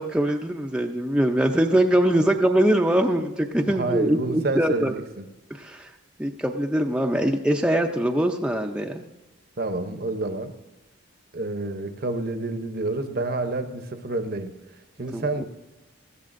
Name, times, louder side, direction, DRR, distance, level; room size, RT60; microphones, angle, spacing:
voice 1, 0.0-4.9 5.5-5.9 6.2-9.0 15.1-15.2, right 1 dB, 5° right, 2 dB, 0.5 m, -22 dB
voice 2, 3.7-5.3 9.6-10.5 11.3-14.5 15.0-15.4, right 2 dB, 45° right, 9 dB, 0.7 m, -28 dB
19.5 x 14.5 x 2.6 m, 1.0 s
head